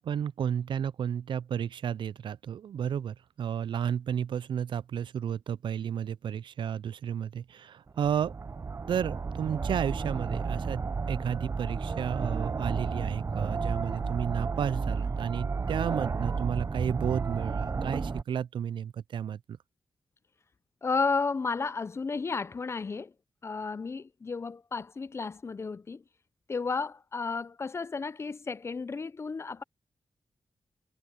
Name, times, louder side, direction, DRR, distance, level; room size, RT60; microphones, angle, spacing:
voice 1, 0.0-8.3 8.9-19.4, right 8 dB, 80° right, 0.4 m, -32 dB
sound 1, 7.9-18.2, right 4 dB, 35° right, 0.6 m, -32 dB
voice 2, 20.8-23.1 23.4-26.0 26.5-29.6, left 4 dB, 35° left, 0.4 m, -32 dB
wide cardioid pair, 115°, 8 cm